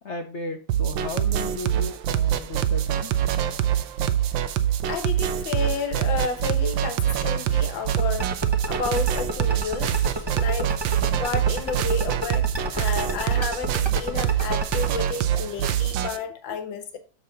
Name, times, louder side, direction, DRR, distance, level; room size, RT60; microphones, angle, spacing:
voice 1, 0.0-3.1 16.5-16.6, left 3 dB, 50° left, 1.0 m, -35 dB
sound 1, 0.7-16.2, right 10 dB, 90° right, 1.5 m, -25 dB
voice 2, 4.9-8.3 8.7-10.8 11.1-17.0, left 5 dB, 90° left, 1.9 m, -31 dB
sound 2, 8.0-14.9, right 1 dB, 20° right, 0.8 m, -29 dB
7.3 x 6.6 x 3.9 m
omnidirectional pair, 2.0 m